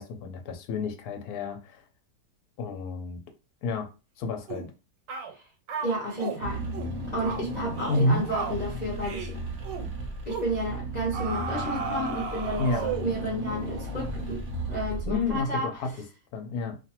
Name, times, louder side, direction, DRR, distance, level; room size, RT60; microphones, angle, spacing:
voice 1, 0.0-1.8 2.6-3.2 3.6-3.9 4.2-4.6 7.9-8.2 12.6-12.9 15.1-15.9 16.3-16.8, left 2 dB, 70° left, 1.1 m, -29 dB
sound 1, 4.5-4.7 5.1-5.3 5.7-6.4 6.7-7.0 7.2-7.5 7.8-8.0 8.3-8.6 9.0-9.3 9.6-9.9 10.3-10.5 11.1-13.2, right 6 dB, 90° right, 1.3 m, -34 dB
voice 2, 5.8-6.6 7.1-9.4 10.3-15.7, equal, 40° left, 0.6 m, -32 dB
Car / Engine, 6.4-15.6, right 1 dB, 60° right, 0.8 m, -35 dB
2.6 x 2.5 x 2.8 m
omnidirectional pair, 1.9 m